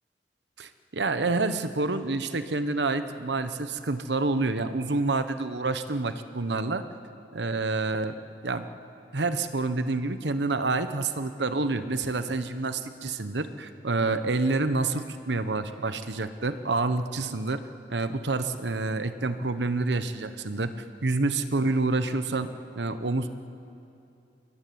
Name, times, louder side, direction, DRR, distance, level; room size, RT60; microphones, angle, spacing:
voice 1, 0.6-6.8 7.3-8.1 8.4-8.7 9.1-17.6 17.9-20.7 21.0-23.3, right 3 dB, 80° right, 10 dB, 1.1 m, -28 dB
24.0 x 22.0 x 9.4 m, 2.7 s
head